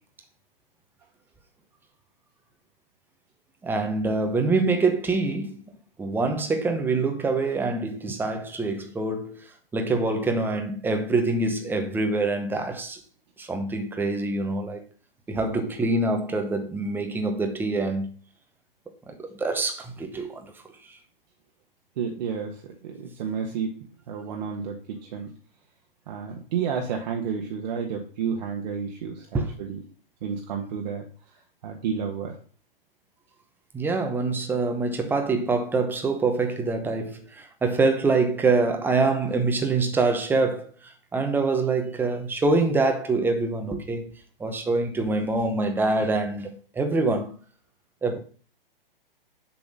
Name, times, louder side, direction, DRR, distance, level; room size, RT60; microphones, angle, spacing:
voice 1, 3.6-5.6 6.0-13.0 13.4-14.8 15.3-18.1 19.1-20.5 20.9-21.0 29.3-29.5 33.7-44.1 44.4-47.3 48.0-48.2, right 3 dB, 5° right, 0.9 m, -25 dB
voice 2, 22.0-23.7 24.1-25.3 26.1-29.8 30.2-31.0 31.6-32.4, right 6 dB, 50° right, 1.4 m, -31 dB
7.3 x 3.8 x 6.4 m
figure-of-eight pair, 115°, 29 cm